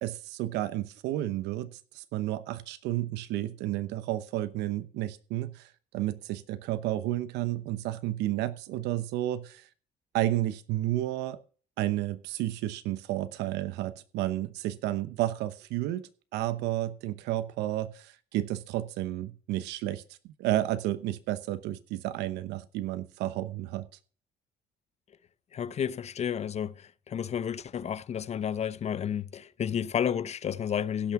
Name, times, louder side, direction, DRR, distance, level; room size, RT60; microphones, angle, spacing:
voice 1, 0.0-9.7 10.1-11.4 11.8-16.0 16.3-20.0 20.4-23.9, right 14 dB, 90° right, 0.9 m, -31 dB
voice 2, 25.5-31.1, left 8 dB, 40° left, 0.6 m, -31 dB
16.5 x 6.2 x 5.8 m
cardioid pair, 110°, 17 cm